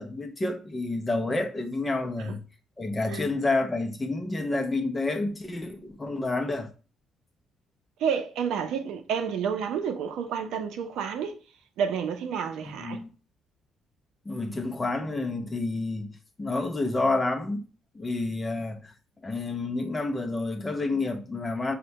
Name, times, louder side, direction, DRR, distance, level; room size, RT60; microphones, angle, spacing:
voice 1, 0.0-2.4 2.8-6.7 12.8-13.1 14.3-16.1 16.4-17.6 17.9-18.9 19.2-21.8, left 2 dB, 15° left, 0.5 m, -29 dB
voice 2, 8.0-11.4 11.8-13.0, right 7 dB, 80° right, 0.5 m, -30 dB
4.3 x 2.1 x 2.7 m
cardioid pair, 160°, 0 cm